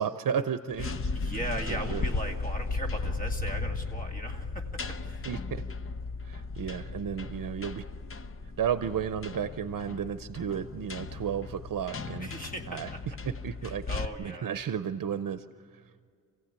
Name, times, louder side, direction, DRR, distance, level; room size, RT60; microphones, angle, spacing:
voice 1, 0.0-0.9 1.3-1.4 1.7-2.0 5.2-5.6 6.2-7.8 8.6-12.3 12.7-12.9 13.2-15.9, right 8 dB, 75° right, 11 dB, 0.7 m, -33 dB
sound 1, 0.7-14.0, left 3 dB, 40° left, 0.7 m, -36 dB
voice 2, 0.8-5.3 12.2-13.0 13.6-14.5, right 1 dB, 25° left, 2 dB, 2.0 m, -39 dB
27.5 x 16.0 x 8.8 m, 2.2 s
wide cardioid pair, 165°, 33 cm